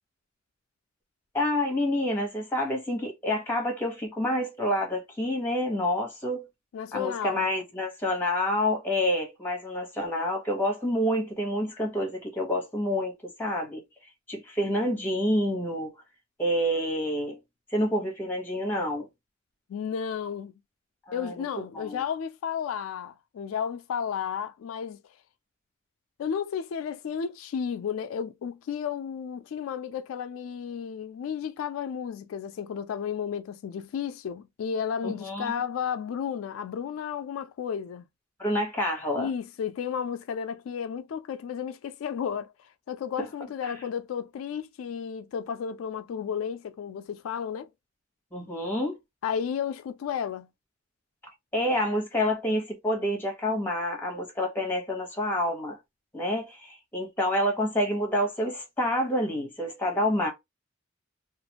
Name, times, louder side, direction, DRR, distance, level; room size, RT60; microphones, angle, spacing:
voice 1, 1.3-6.5 6.9-13.8 14.3-15.9 16.4-17.4 17.7-19.1 21.1-21.3 21.7-22.0 35.0-35.5 38.4-39.3 43.6-43.7 48.3-49.0 51.5-55.8 56.1-60.3, left 1 dB, 10° left, 1.0 m, -28 dB
voice 2, 6.7-7.5 19.7-20.5 21.1-25.0 26.2-38.0 39.1-42.5 42.9-47.7 49.2-50.5, left 7 dB, 85° left, 0.3 m, -33 dB
2.5 x 2.4 x 2.8 m
head